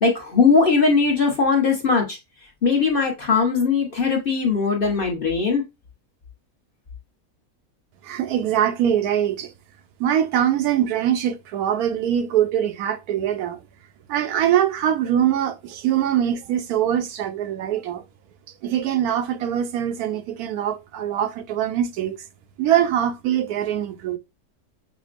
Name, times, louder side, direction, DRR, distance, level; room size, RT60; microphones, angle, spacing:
voice 1, 0.0-2.2 2.6-5.6, left 4 dB, 45° left, 0.9 m, -19 dB
voice 2, 8.0-9.5 10.0-13.6 14.1-18.0 18.6-22.2 22.6-24.2, right 10 dB, 80° right, 1.1 m, -23 dB
5.9 x 2.1 x 2.4 m
omnidirectional pair, 1.6 m